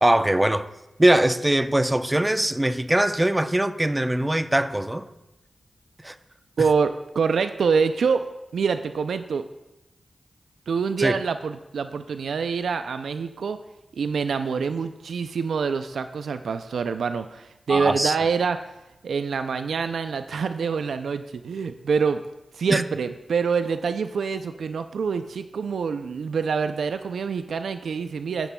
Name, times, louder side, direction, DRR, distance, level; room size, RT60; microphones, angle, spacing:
voice 1, 0.0-0.7 1.0-5.0 6.0-6.1 11.0-11.1 17.7-18.2 22.7-22.8, right 1 dB, 20° right, 0.6 m, -21 dB
voice 2, 6.6-8.3 8.5-9.5 10.7-13.6 13.9-18.6 19.0-22.2 22.5-28.5, right 5 dB, 85° right, 0.3 m, -26 dB
16.0 x 6.8 x 2.2 m
cardioid pair, 40°, 0 cm